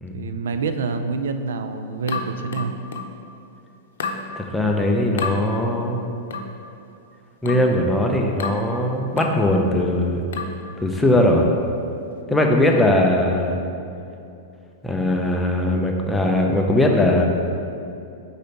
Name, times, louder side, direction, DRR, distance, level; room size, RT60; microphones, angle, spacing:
voice 1, 0.1-2.7 12.3-12.6, right 4 dB, 85° right, 8 dB, 0.4 m, -27 dB
sound 1, 2.1-3.2 4.0-4.3 5.2-5.4 6.3-6.6 7.5-7.7 8.4-8.7 9.2-9.4 10.3-10.6, left 4 dB, 85° left, 0.6 m, -30 dB
voice 2, 4.4-6.0 7.4-10.2 10.8-11.5 12.3-13.6 14.8-17.3, left 1 dB, 5° left, 1 dB, 0.5 m, -20 dB
5.0 x 3.9 x 5.7 m, 2.7 s
supercardioid pair, 150°, 0 cm